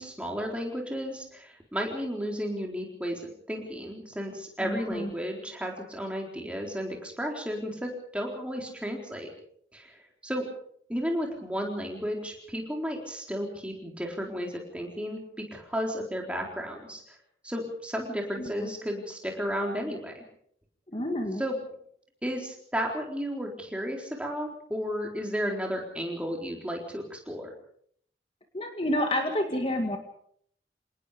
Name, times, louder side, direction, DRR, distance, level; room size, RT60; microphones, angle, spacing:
voice 1, 0.0-9.3 9.7-10.4 10.9-17.0 17.4-20.2 21.4-21.6 22.2-27.5, equal, 5° right, 1 dB, 4.1 m, -33 dB
voice 2, 4.6-5.1 18.4-18.7 20.9-21.4 28.5-30.0, left 1 dB, 30° left, 4 dB, 2.1 m, -29 dB
27.5 x 19.0 x 5.2 m, 0.64 s
head